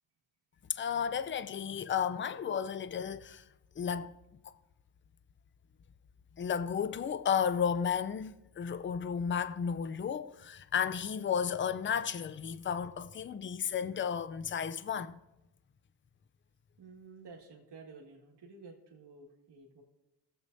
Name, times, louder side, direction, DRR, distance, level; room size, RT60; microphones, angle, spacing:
voice 1, 0.7-3.4 3.8-4.1 4.4-4.5 6.4-15.2, left 7 dB, 25° left, 0.5 m, -33 dB
voice 2, 16.8-19.8, right 4 dB, 55° right, 2.0 m, -52 dB
18.0 x 8.0 x 2.7 m
supercardioid pair, 60°, 49 cm